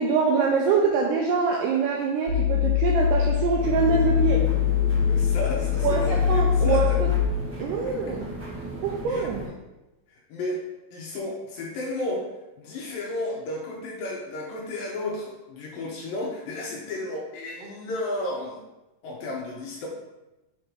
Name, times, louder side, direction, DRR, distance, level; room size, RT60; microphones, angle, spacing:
voice 1, 0.0-4.5 5.8-7.1 7.6-8.3 8.8-9.4, right 5 dB, 85° right, -1 dB, 1.9 m, -24 dB
sound 1, 2.3-7.3, left 9 dB, 65° right, 3.6 m, -23 dB
sound 2, 3.6-9.5, right 1 dB, 45° right, 1.3 m, -36 dB
voice 2, 5.1-7.1 9.1-9.5 10.3-10.6 10.9-12.3 12.6-18.6 19.0-19.9, left 1 dB, 80° left, -2 dB, 2.3 m, -33 dB
6.8 x 3.0 x 5.1 m, 1.0 s
omnidirectional pair, 4.4 m